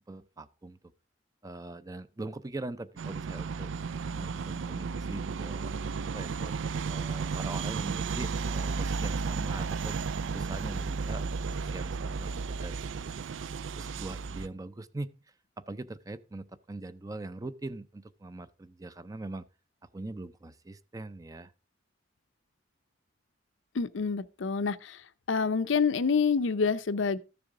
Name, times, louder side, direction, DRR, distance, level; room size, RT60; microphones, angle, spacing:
voice 1, 0.1-0.8 1.4-3.7 4.1-5.7 6.1-6.6 6.9-10.0 10.3-12.8 13.8-15.2 15.6-19.5 19.8-21.5, right 2 dB, 20° right, 0.5 m, -42 dB
sound 1, 3.0-14.5, right 5 dB, 75° right, 0.4 m, -33 dB
voice 2, 23.7-25.0 25.3-27.2, left 5 dB, 80° left, 0.6 m, -27 dB
13.5 x 6.9 x 3.7 m
head